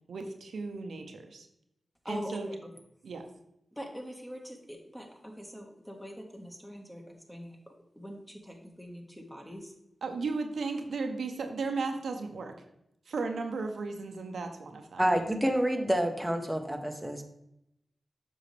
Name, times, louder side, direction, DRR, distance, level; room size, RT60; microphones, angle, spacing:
voice 1, 0.1-1.5 2.1-2.5 3.0-3.2 10.0-12.5 13.1-15.2, right 4 dB, 90° right, 5 dB, 0.8 m, -35 dB
voice 2, 2.1-2.6 3.7-9.7, equal, 10° left, 1 dB, 1.6 m, -43 dB
voice 3, 15.0-17.2, equal, 10° right, 4 dB, 1.0 m, -28 dB
7.5 x 5.6 x 3.4 m, 0.83 s
cardioid pair, 55°, 0 cm